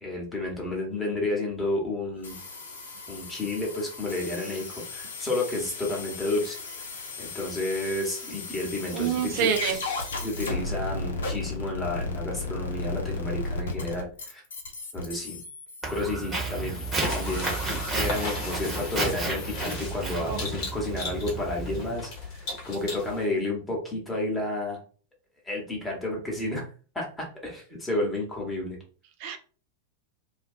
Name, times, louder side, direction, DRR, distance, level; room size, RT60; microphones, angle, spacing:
voice 1, 0.0-2.4 3.1-6.6 7.2-14.4 14.9-15.4 15.9-16.8 17.1-17.5 17.9-24.8 25.4-26.6 26.9-28.8, left 2 dB, 10° left, -2 dB, 1.0 m, -31 dB
sound 1, 2.2-19.7, left 3 dB, 65° left, 0.6 m, -36 dB
voice 2, 8.9-9.8 20.3-20.4 29.2-29.4, right 8 dB, 45° right, 6 dB, 0.4 m, -26 dB
Walk footsteps, 15.8-21.9, right 3 dB, 20° right, 1.1 m, -32 dB
sound 2, 16.5-23.2, left 2 dB, 40° left, 0.9 m, -36 dB
2.5 x 2.2 x 2.4 m, 0.39 s
figure-of-eight pair, 90°, 0 cm